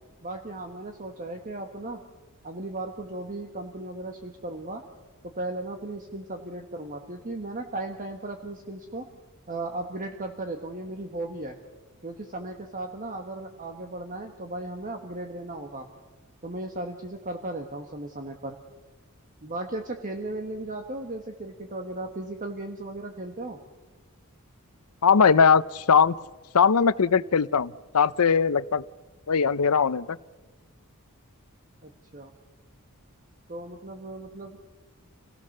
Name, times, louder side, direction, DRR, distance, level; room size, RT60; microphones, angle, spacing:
voice 1, 0.2-2.0 2.4-4.8 5.2-9.0 9.5-11.5 12.0-15.9 16.4-18.6 19.4-23.6 31.8-32.3 33.5-34.8, right 2 dB, 35° right, 4 dB, 1.5 m, -36 dB
voice 2, 25.0-26.2 26.5-28.8 29.3-30.2, left 6 dB, 80° left, 17 dB, 0.6 m, -20 dB
28.0 x 18.0 x 6.7 m, 1.2 s
head